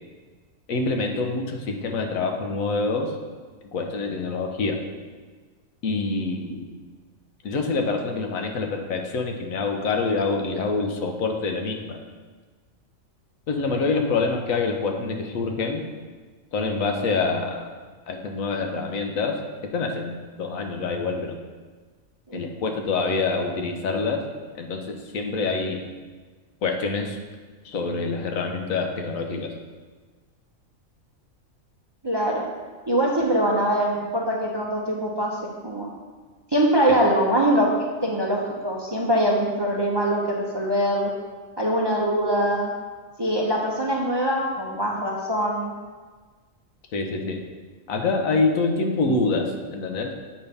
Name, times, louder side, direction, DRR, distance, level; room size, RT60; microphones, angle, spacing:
voice 1, 0.7-3.2 3.7-4.8 5.8-6.7 7.4-12.0 13.5-15.8 16.5-17.7 18.1-19.4 19.7-21.4 22.3-24.2 24.5-25.8 26.6-27.2 27.6-29.5 36.9-37.0 46.9-47.4 47.9-50.1, left 3 dB, 90° left, 3 dB, 1.2 m, -26 dB
voice 2, 32.0-32.5 32.9-35.9 36.5-41.1 41.6-42.7 43.2-45.7, right 1 dB, 30° right, -2 dB, 0.5 m, -23 dB
8.0 x 5.3 x 3.4 m, 1.4 s
omnidirectional pair, 1.4 m